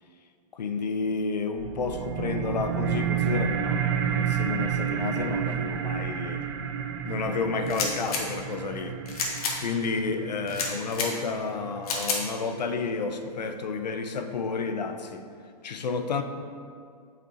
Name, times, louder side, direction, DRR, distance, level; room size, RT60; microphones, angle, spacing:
voice 1, 0.5-6.4 7.0-9.0 9.6-15.2 15.6-16.2, left 4 dB, 90° left, 7 dB, 0.7 m, -31 dB
sound 1, 1.6-12.6, right 8 dB, 35° right, 0.4 m, -30 dB
sound 2, 7.7-8.2 9.1-9.6 10.5-11.1 11.8-12.2, left 4 dB, 60° left, 1.3 m, -29 dB
8.5 x 5.0 x 2.9 m, 2.2 s
hypercardioid pair, 150°, 21 cm